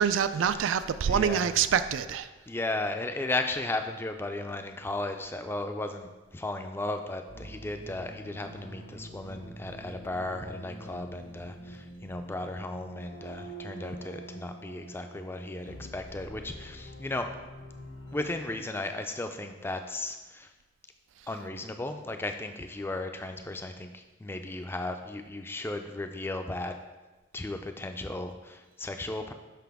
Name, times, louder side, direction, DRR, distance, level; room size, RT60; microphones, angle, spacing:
voice 1, 0.0-2.3, right 7 dB, 80° right, 12 dB, 0.3 m, -26 dB
voice 2, 1.0-1.5 2.5-17.3 18.1-20.5 21.3-26.8 27.3-29.3, left 2 dB, 10° left, 6 dB, 0.3 m, -35 dB
sound 1, 7.3-18.6, right 1 dB, 85° left, 1.2 m, -46 dB
5.9 x 5.6 x 3.5 m, 1.2 s
head